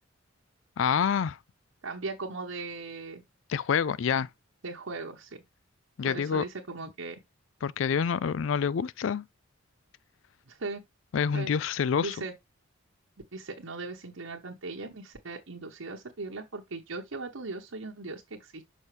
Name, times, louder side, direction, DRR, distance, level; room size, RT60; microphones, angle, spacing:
voice 1, 0.8-1.4 3.5-4.3 6.0-6.4 7.6-9.2 11.1-12.2, left 7 dB, 65° left, 0.4 m, -27 dB
voice 2, 1.8-3.2 4.6-5.4 6.0-7.2 10.5-10.8 11.3-11.5 12.0-12.3 13.3-18.6, right 3 dB, 80° right, 1.1 m, -38 dB
6.4 x 5.4 x 3.2 m
head